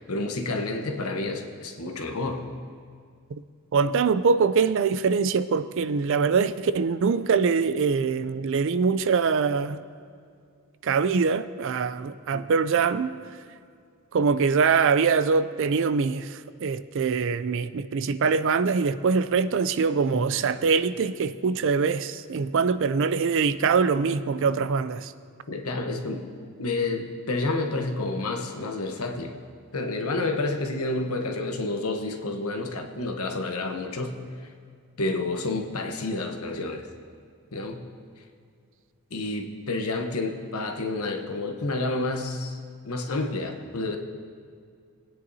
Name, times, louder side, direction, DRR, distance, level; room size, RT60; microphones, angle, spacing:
voice 1, 0.0-2.4 12.3-12.4 20.1-20.2 25.5-26.3 26.6-29.4 29.7-34.2 35.0-36.9 37.5-37.8 39.1-42.6 42.8-44.0, left 2 dB, 75° left, 5 dB, 1.0 m, -29 dB
voice 2, 3.7-9.8 10.8-13.1 14.1-25.1, right 5 dB, 55° right, 13 dB, 0.4 m, -23 dB
20.0 x 9.3 x 2.7 m, 2.2 s
head